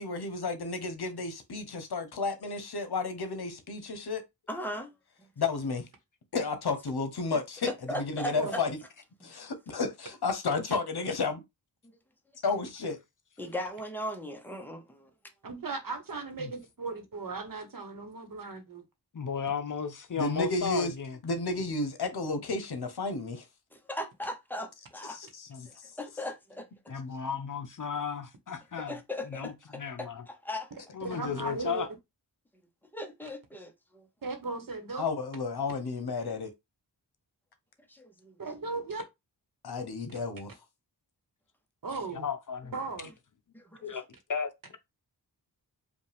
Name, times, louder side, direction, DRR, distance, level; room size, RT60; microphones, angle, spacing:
voice 1, 0.0-4.2 5.4-5.8 6.3-8.8 9.2-11.4 12.4-13.0 20.1-20.9 21.2-23.4 25.1-25.5 35.0-36.5 39.6-40.5, left 3 dB, 65° left, 1.0 m, -32 dB
voice 2, 4.5-4.9 7.9-8.6 9.2-9.3 13.4-15.1 23.7-25.2 25.7-26.7 28.9-30.7 32.9-34.1 37.9-38.3 43.5-43.8, equal, 5° left, 0.8 m, -38 dB
voice 3, 15.4-18.8 31.0-31.9 34.2-35.1 38.4-39.0 40.1-40.2 41.8-42.3 42.7-43.1, right 3 dB, 55° right, 1.1 m, -36 dB
voice 4, 19.1-21.2 25.5-25.7 26.9-28.9 29.3-30.2 30.9-31.9 42.1-42.7 43.8-44.0 44.3-44.5, left 6 dB, 50° left, 0.6 m, -34 dB
5.1 x 2.4 x 3.4 m
wide cardioid pair, 105°, 41 cm